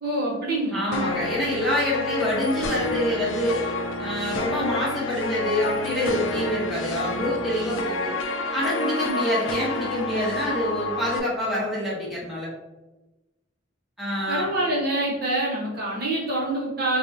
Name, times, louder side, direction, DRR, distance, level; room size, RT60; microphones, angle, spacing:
voice 1, 0.0-1.2 14.3-17.0, right 1 dB, 55° right, -4 dB, 1.0 m, -26 dB
voice 2, 0.7-3.6 4.0-8.1 8.5-12.5 14.0-14.5, left 1 dB, ahead, -8 dB, 1.0 m, -26 dB
sound 1, 0.9-11.2, left 2 dB, 85° left, 0.4 m, -29 dB
4.6 x 2.3 x 2.7 m, 1.1 s
head